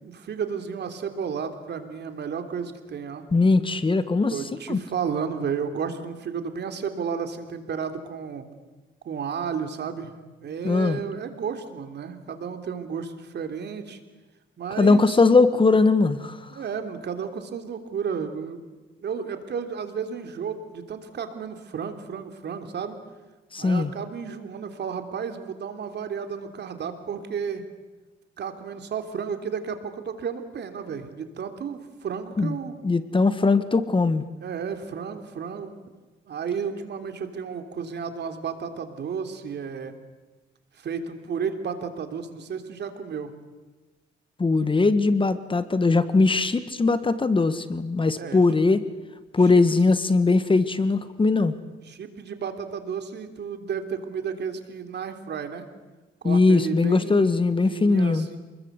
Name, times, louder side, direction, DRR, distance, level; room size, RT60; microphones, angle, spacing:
voice 1, 0.0-3.2 4.3-8.5 9.1-10.1 10.4-14.0 14.6-15.2 16.5-18.6 19.0-23.0 23.6-27.6 28.4-32.7 34.4-35.8 36.3-39.9 40.7-43.3 48.2-48.4 49.4-49.6 51.9-55.6 56.2-57.3 57.7-58.4, right 6 dB, 60° right, 7 dB, 3.3 m, -32 dB
voice 2, 3.3-4.4 4.7-4.8 10.6-11.0 14.8-16.5 23.5-23.9 32.4-32.6 32.8-34.2 44.4-48.8 49.3-51.5 56.2-58.3, left 3 dB, 25° left, 12 dB, 1.6 m, -20 dB
28.5 x 21.0 x 8.2 m, 1.2 s
cardioid pair, 90°, 20 cm